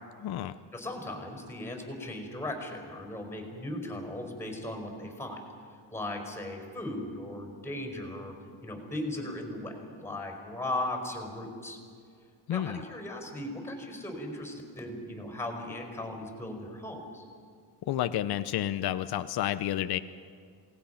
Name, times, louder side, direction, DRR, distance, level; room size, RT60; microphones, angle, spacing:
voice 1, 0.2-0.6 12.5-12.8 17.9-20.0, left 12 dB, 60° left, 10 dB, 0.8 m, -30 dB
voice 2, 0.7-5.4 5.9-8.3 8.6-11.8 12.5-17.2, left 1 dB, 5° left, 3 dB, 5.0 m, -37 dB
28.0 x 19.5 x 5.8 m, 2.1 s
cardioid pair, 135°, 42 cm